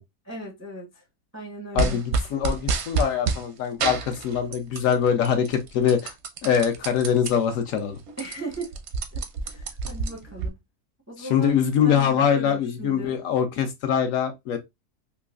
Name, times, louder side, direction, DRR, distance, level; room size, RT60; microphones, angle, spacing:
voice 1, 0.2-1.0 1.3-2.0 8.2-8.7 9.1-10.6 11.1-11.5 11.8-13.2, right 2 dB, 25° right, 0.3 m, -37 dB
voice 2, 1.7-6.1 6.4-8.0 11.2-14.6, left 8 dB, 70° left, 0.9 m, -23 dB
sound 1, 1.8-3.4 3.8-4.9 5.2-7.3 7.7-7.8 8.1-10.5, right 4 dB, 65° right, 0.7 m, -28 dB
3.8 x 2.4 x 2.3 m
omnidirectional pair, 1.6 m